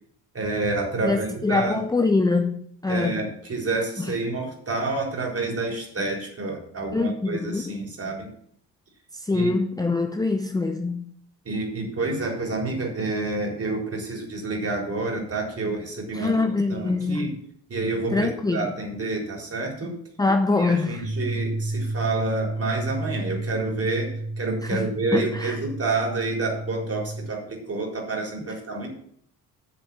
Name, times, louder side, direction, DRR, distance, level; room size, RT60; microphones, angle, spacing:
voice 1, 0.3-1.8 2.9-8.3 9.3-9.5 11.5-17.3 17.7-20.0 20.6-28.9, right 3 dB, 30° right, 3.9 m, -29 dB
voice 2, 1.0-3.2 4.0-4.1 6.9-7.8 9.1-11.1 16.1-17.3 18.1-18.7 20.2-21.1 24.6-25.6, left 3 dB, 10° left, 0.7 m, -24 dB
sound 1, 21.0-27.3, right 2 dB, 80° right, 3.0 m, -31 dB
7.8 x 6.7 x 7.0 m
figure-of-eight pair, 50°, 47 cm